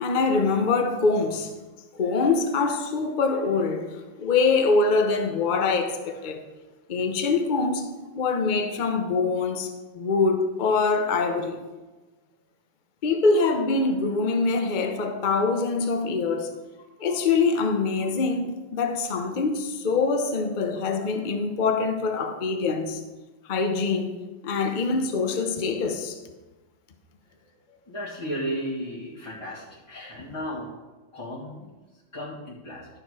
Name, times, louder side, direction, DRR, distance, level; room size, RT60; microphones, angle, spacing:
voice 1, 0.0-1.5 1.9-6.4 6.9-11.6 13.0-16.5 17.0-23.0 23.5-24.1 24.4-26.2, left 4 dB, 50° left, 0.5 m, -24 dB
voice 2, 27.3-30.7 31.1-32.9, equal, 15° left, 1.5 m, -35 dB
12.0 x 6.9 x 4.8 m
omnidirectional pair, 2.3 m